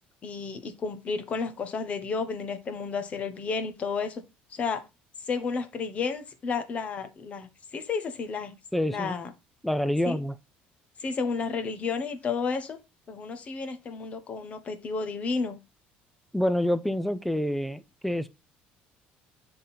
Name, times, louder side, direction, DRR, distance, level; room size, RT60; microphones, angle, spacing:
voice 1, 0.2-4.2 4.5-4.8 5.3-8.6 8.9-9.3 10.0-10.2 11.0-12.8 13.1-15.6, left 5 dB, 35° left, 1.1 m, -32 dB
voice 2, 8.7-9.1 9.6-10.3 16.3-18.3, left 1 dB, ahead, 0.5 m, -27 dB
7.3 x 3.9 x 4.2 m
cardioid pair, 125°, 4 cm